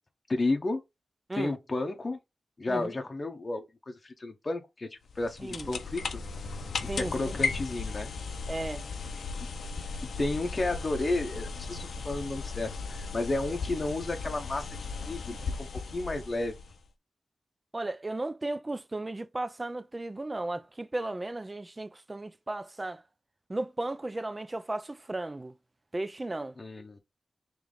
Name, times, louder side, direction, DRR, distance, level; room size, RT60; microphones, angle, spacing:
voice 1, 0.3-0.8 1.3-2.2 2.6-4.9 5.2-6.2 6.8-8.1 10.0-15.7 15.9-16.6 26.6-27.0, left 2 dB, 35° left, 0.7 m, -32 dB
sound 1, 5.1-16.9, left 4 dB, 90° left, 0.5 m, -36 dB
voice 2, 5.4-5.7 6.9-7.3 8.5-8.9 17.7-23.0 23.5-25.5 25.9-26.5, right 2 dB, 25° right, 0.3 m, -35 dB
3.3 x 3.1 x 3.8 m
wide cardioid pair, 125°, 0 cm